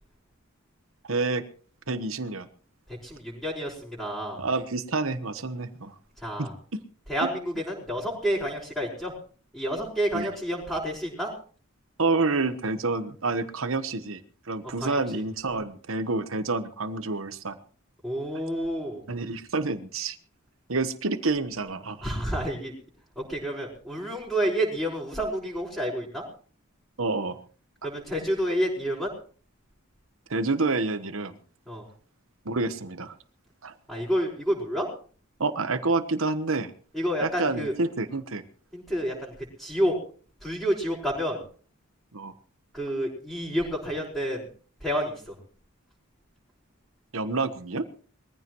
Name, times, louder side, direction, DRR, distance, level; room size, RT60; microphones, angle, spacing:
voice 1, 1.1-1.4 1.9-2.5 4.4-5.9 6.4-6.8 10.1-10.3 12.0-14.2 14.5-17.6 19.1-20.2 20.7-22.0 27.0-27.4 30.3-31.4 32.4-33.1 33.6-33.7 35.4-36.7 37.2-38.4 42.1-42.3 47.1-47.8, right 3 dB, 80° right, 11 dB, 1.2 m, -28 dB
voice 2, 2.9-4.4 6.2-6.5 7.1-9.1 9.5-11.3 14.8-15.2 18.0-19.0 22.0-22.7 23.1-26.2 27.8-29.1 31.7-31.9 33.9-34.9 36.9-37.7 38.7-39.9 40.4-41.4 42.7-44.5 44.8-45.4, equal, ahead, -9 dB, 5.1 m, -29 dB
22.5 x 15.0 x 3.1 m, 0.42 s
head